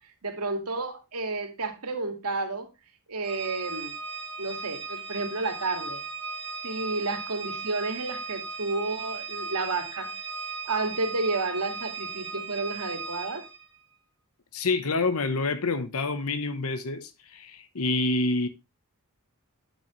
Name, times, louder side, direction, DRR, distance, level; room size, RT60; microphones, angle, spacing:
voice 1, 0.2-2.7 3.1-3.9 4.4-6.0 6.6-10.1 10.7-13.5, right 3 dB, 80° right, 2.1 m, -31 dB
Organ, 3.2-13.6, right 4 dB, 25° right, 3.3 m, -37 dB
voice 2, 14.5-18.5, left 3 dB, 70° left, 1.0 m, -27 dB
8.6 x 7.4 x 3.1 m
head